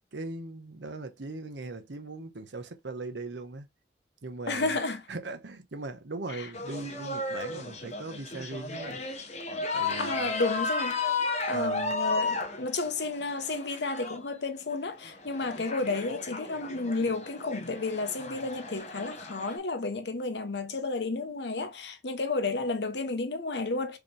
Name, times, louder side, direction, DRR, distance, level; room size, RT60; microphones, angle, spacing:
voice 1, 0.1-3.7 4.2-4.8 5.1-9.0 9.7-10.3 11.5-11.9, right 3 dB, 90° right, 0.9 m, -39 dB
voice 2, 4.5-5.0 6.3-6.5 10.0-11.0 11.5-24.0, left 3 dB, 80° left, 0.9 m, -32 dB
sound 1, 6.5-14.2 15.0-19.6, left 3 dB, 40° left, 0.9 m, -34 dB
4.9 x 3.0 x 3.2 m
head